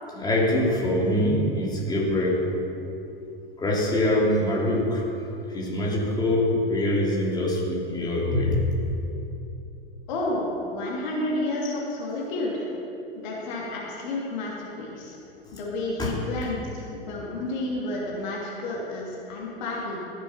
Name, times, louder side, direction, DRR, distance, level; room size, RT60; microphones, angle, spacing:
voice 1, 0.1-2.5 3.6-5.0 5.5-8.6 16.0-16.1, left 1 dB, 15° left, -3 dB, 2.9 m, -24 dB
voice 2, 10.1-12.7 13.2-15.2 15.5-20.0, left 2 dB, 50° left, -3 dB, 2.8 m, -30 dB
14.5 x 7.5 x 5.8 m, 2.8 s
figure-of-eight pair, 90°, 29 cm